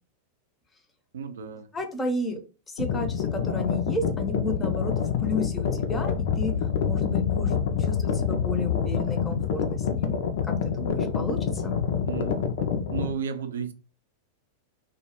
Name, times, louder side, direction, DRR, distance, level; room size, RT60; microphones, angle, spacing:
voice 1, 1.1-1.7 12.1-12.4 12.9-13.7, right 6 dB, 70° right, 0.4 m, -33 dB
voice 2, 1.7-2.4 2.7-6.5 6.8-10.2 10.6-11.8, left 2 dB, 15° left, 0.6 m, -32 dB
sound 1, 2.8-13.1, left 7 dB, 60° left, 0.4 m, -27 dB
2.2 x 2.0 x 2.9 m
figure-of-eight pair, 95°, 0 cm